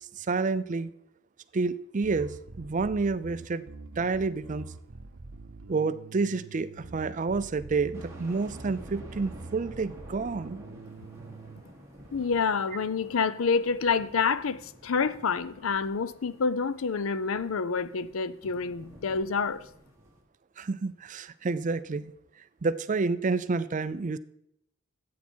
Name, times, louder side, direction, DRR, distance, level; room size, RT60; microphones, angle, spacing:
voice 1, 0.1-0.9 1.5-3.7 4.0-4.7 5.7-10.6 20.6-22.1 22.6-24.2, right 4 dB, 35° right, 0.4 m, -29 dB
Bass guitar, 2.0-11.6, right 3 dB, 85° right, 0.7 m, -45 dB
sound 1, 7.9-20.2, equal, 15° right, 2.0 m, -51 dB
voice 2, 12.1-19.6, left 5 dB, 75° left, 0.6 m, -28 dB
13.5 x 8.3 x 4.5 m
head